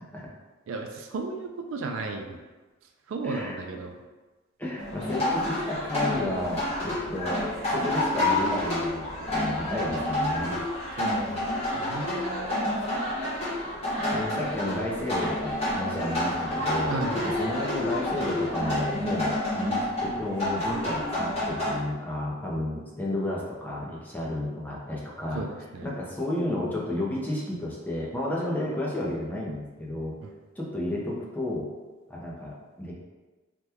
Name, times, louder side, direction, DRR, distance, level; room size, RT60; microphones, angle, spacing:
voice 1, 0.7-2.4 3.1-4.0 9.2-9.3 11.0-12.5 16.9-17.2 25.3-25.9 30.2-30.3, right 3 dB, 70° right, 4 dB, 0.3 m, -34 dB
voice 2, 3.2-3.6 4.6-9.0 9.3-10.6 14.1-25.4 25.8-30.2 30.6-31.7 32.1-32.9, left 1 dB, 10° left, -4 dB, 0.5 m, -32 dB
sound 1, 4.8-21.7, left 1 dB, 30° left, 1.0 m, -29 dB
2.8 x 2.2 x 3.3 m, 1.2 s
head